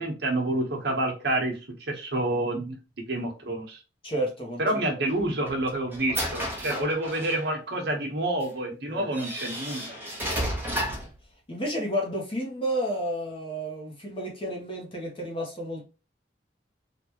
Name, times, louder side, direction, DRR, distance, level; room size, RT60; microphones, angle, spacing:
voice 1, 0.0-2.8 3.1-3.8 4.6-10.0, right 1 dB, 65° right, 1.0 m, -28 dB
voice 2, 4.0-4.6 8.9-9.1 10.6-11.1 11.5-15.8, equal, 30° left, 0.9 m, -31 dB
sound 1, 5.1-7.5 8.4-8.5 9.1-11.2, equal, 10° right, 1.0 m, -32 dB
3.4 x 2.4 x 2.9 m
head